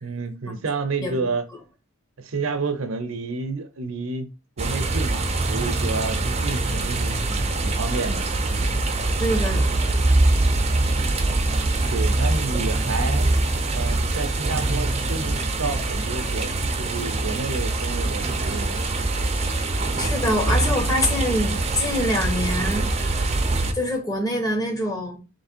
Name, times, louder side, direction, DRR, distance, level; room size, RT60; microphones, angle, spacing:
voice 1, 0.0-1.5 2.2-4.3 4.6-8.2 11.2-11.4 11.9-13.3 13.7-18.8, right 4 dB, 70° right, 0.7 m, -30 dB
sound 1, 4.6-23.7, right 2 dB, 30° right, 0.5 m, -23 dB
voice 2, 9.2-9.7 20.0-23.3 23.7-25.2, left 1 dB, 15° left, 1.0 m, -25 dB
3.3 x 3.2 x 4.3 m
head